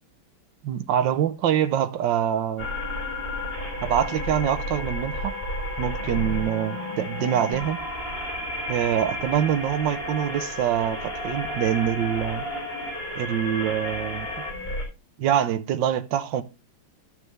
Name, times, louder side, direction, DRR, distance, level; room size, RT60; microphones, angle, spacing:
voice 1, 0.6-2.7 3.8-5.3 5.8-7.8 8.7-12.5 13.1-14.3 15.2-16.4, right 10 dB, 70° right, 1.4 m, -25 dB
sound 1, 2.6-14.8, left 1 dB, 25° left, 3.5 m, -32 dB
12.0 x 6.7 x 3.2 m
omnidirectional pair, 2.3 m